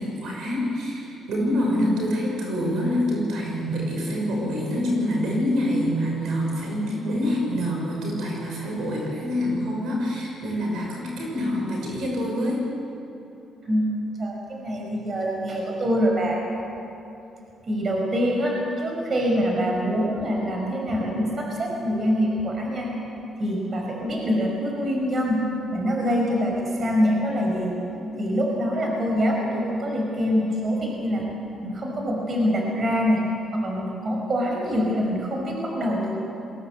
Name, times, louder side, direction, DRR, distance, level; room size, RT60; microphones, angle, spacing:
voice 1, 0.0-12.7, equal, 80° right, -1 dB, 6.1 m, -26 dB
voice 2, 13.6-16.4 17.7-22.9 23.4-25.5 25.7-27.7 28.2-31.2 31.6-33.2 33.5-36.2, equal, 45° right, 0 dB, 5.4 m, -25 dB
22.0 x 16.5 x 8.2 m, 2.8 s
cardioid pair, 90°, 0 cm